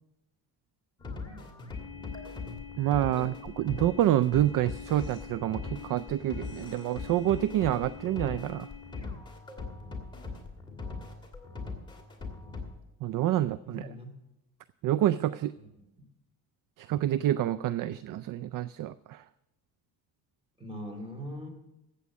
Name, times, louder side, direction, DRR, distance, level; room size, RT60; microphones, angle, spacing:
sound 1, 1.0-12.8, left 4 dB, 10° left, 2.5 m, -40 dB
voice 1, 2.8-8.7 13.0-13.9 14.8-15.5 16.8-19.2, right 12 dB, 55° right, 16 dB, 0.4 m, -27 dB
voice 2, 13.6-14.1 15.6-15.7 20.6-21.5, equal, 15° right, 5 dB, 2.9 m, -41 dB
14.0 x 8.4 x 6.2 m, 0.95 s
cardioid pair, 105°, 41 cm